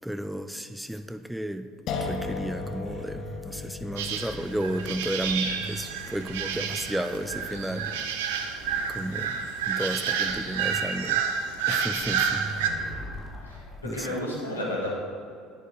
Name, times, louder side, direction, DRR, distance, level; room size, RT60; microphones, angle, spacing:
voice 1, 0.0-1.7 2.0-8.3 8.9-11.2 11.7-12.5 13.8-14.2, right 1 dB, 5° right, 9 dB, 0.5 m, -33 dB
sound 1, 1.9-8.8, left 5 dB, 50° left, 1.0 m, -38 dB
sound 2, 2.2-4.8 5.2-5.8 6.2-6.7 7.3-7.9 8.6-9.2 10.2-10.8 12.0-13.9, right 1 dB, 25° left, 2.8 m, -41 dB
sound 3, 4.0-12.7, right 7 dB, 70° right, 0.8 m, -30 dB
voice 2, 13.4-14.9, left 1 dB, 85° left, -3 dB, 2.2 m, -32 dB
10.5 x 9.7 x 4.2 m, 2.4 s
figure-of-eight pair, 60°, 0 cm